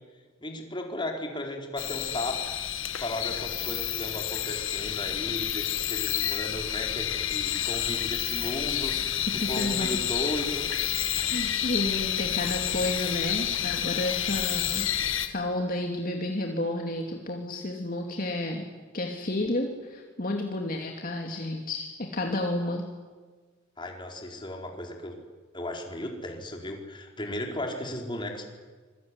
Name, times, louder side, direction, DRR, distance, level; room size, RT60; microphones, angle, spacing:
voice 1, 0.4-2.5 3.0-10.7 23.8-25.2 25.5-28.5, left 1 dB, 25° left, 2 dB, 4.5 m, -35 dB
sound 1, 1.8-15.3, left 10 dB, 85° left, 1.9 m, -29 dB
voice 2, 9.4-9.9 11.1-14.9 15.2-18.6 18.9-22.8, left 1 dB, 45° left, 1 dB, 2.7 m, -31 dB
26.5 x 22.5 x 9.9 m, 1.4 s
head